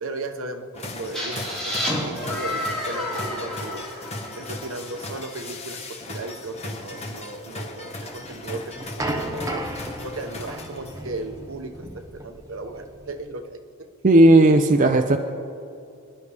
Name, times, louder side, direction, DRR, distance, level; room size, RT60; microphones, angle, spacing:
voice 1, 0.0-3.8 4.3-9.6 10.0-13.6, right 2 dB, 65° right, 6 dB, 1.0 m, -36 dB
sound 1, 0.7-11.2, left 2 dB, 30° left, 1.1 m, -37 dB
sound 2, 1.1-4.9, left 1 dB, 5° left, 4.3 m, -30 dB
sound 3, 8.2-13.2, right 1 dB, 15° right, 1.1 m, -34 dB
voice 2, 14.0-15.2, right 2 dB, 35° right, 4 dB, 0.6 m, -14 dB
25.5 x 11.0 x 3.4 m, 2.4 s
head